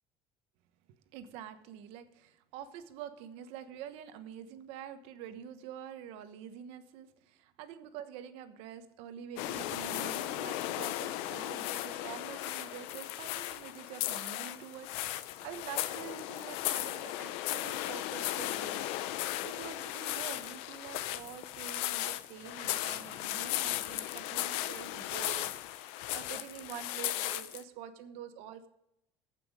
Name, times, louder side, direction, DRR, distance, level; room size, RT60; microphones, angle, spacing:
voice 1, 1.1-18.9 19.4-28.7, right 9 dB, 75° right, 10 dB, 1.1 m, -47 dB
sound 1, 9.4-27.6, left 14 dB, 85° left, 0.6 m, -36 dB
15.5 x 6.0 x 5.0 m, 0.82 s
cardioid pair, 165°, 10 cm